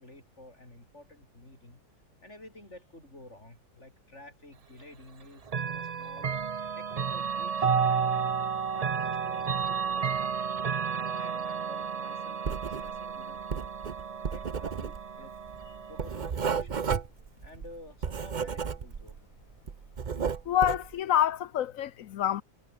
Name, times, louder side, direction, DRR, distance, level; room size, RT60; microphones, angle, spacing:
voice 1, 0.0-1.8 2.2-6.3 6.8-8.3 8.7-10.5 10.9-13.7 14.3-15.3 15.9-17.0 17.4-19.2, left 1 dB, 40° left, 6.9 m, -51 dB
Chime / Clock, 5.5-16.3, right 6 dB, 70° right, 0.3 m, -32 dB
Writing, 12.4-13.1 13.4-19.2 19.5-20.9, right 6 dB, 40° right, 0.8 m, -33 dB
voice 2, 20.5-22.4, left 11 dB, 65° left, 0.9 m, -27 dB
omnidirectional pair, 1.8 m